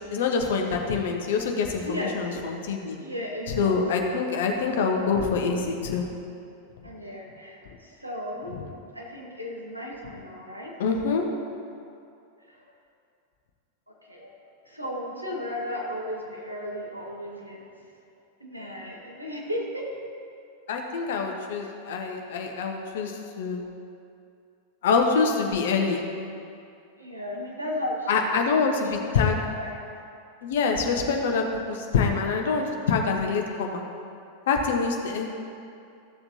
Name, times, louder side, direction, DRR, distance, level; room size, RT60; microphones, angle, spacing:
voice 1, 0.1-3.0 3.5-6.1 10.8-11.2 20.7-23.6 24.8-26.0 28.1-29.4 30.4-33.8 34.5-35.4, left 5 dB, 55° left, 3 dB, 1.0 m, -25 dB
voice 2, 1.8-2.3 3.0-3.7 6.8-8.6 8.9-10.7 12.5-12.6 13.9-14.3 14.6-17.6 18.4-19.9 27.0-28.1 28.7-29.9, left 1 dB, 85° right, -2 dB, 1.6 m, -35 dB
14.5 x 7.0 x 2.8 m, 2.5 s
figure-of-eight pair, 90°, 0 cm